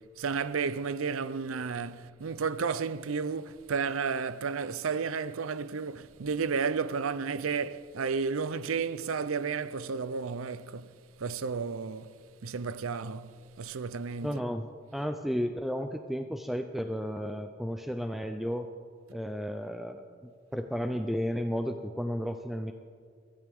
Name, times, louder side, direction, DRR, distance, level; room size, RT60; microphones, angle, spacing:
voice 1, 0.0-10.9 11.2-12.1 12.4-14.4, right 5 dB, 85° right, 0.6 m, -32 dB
voice 2, 14.2-14.7 14.9-18.7 19.1-22.7, equal, ahead, 0.5 m, -33 dB
23.0 x 16.0 x 3.6 m
head